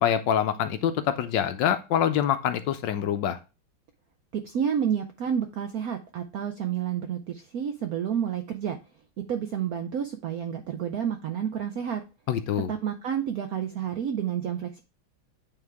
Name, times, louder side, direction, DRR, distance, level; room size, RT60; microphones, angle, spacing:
voice 1, 0.0-3.4 12.3-12.7, left 9 dB, 75° left, 9 dB, 1.2 m, -25 dB
voice 2, 4.3-8.8 9.3-12.0 12.7-14.8, right 8 dB, 75° right, 6 dB, 0.8 m, -30 dB
8.7 x 3.6 x 3.4 m, 0.30 s
omnidirectional pair, 2.2 m